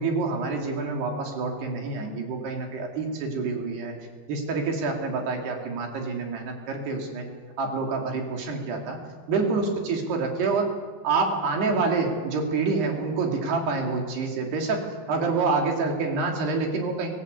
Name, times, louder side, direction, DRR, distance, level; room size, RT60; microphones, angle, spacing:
voice 1, 0.0-3.9 4.3-7.3 7.6-9.0 9.3-10.7 11.0-17.1, right 4 dB, 65° right, 2 dB, 5.0 m, -27 dB
24.0 x 16.5 x 8.5 m, 1.5 s
omnidirectional pair, 5.1 m